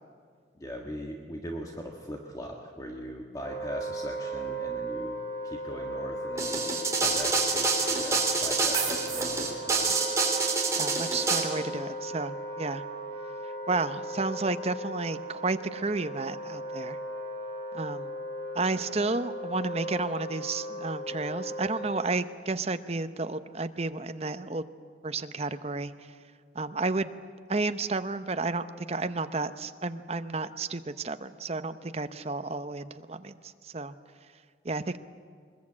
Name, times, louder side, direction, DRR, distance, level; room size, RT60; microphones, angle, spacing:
voice 1, 0.6-5.2 5.4-6.7 7.0-9.9, equal, 20° left, 1 dB, 1.6 m, -40 dB
Wind instrument woodwind instrument, 3.4-22.0, right 1 dB, 65° left, 6.7 m, -37 dB
sound 1, 6.4-11.4, right 4 dB, 15° right, 3.2 m, -27 dB
voice 2, 10.8-12.8 13.7-17.0 17.7-18.1 18.5-24.6 25.0-25.9 26.5-27.1 27.5-33.4 33.6-33.9 34.6-35.0, right 3 dB, 35° right, 10 dB, 0.8 m, -32 dB
22.5 x 21.0 x 8.6 m, 2.1 s
head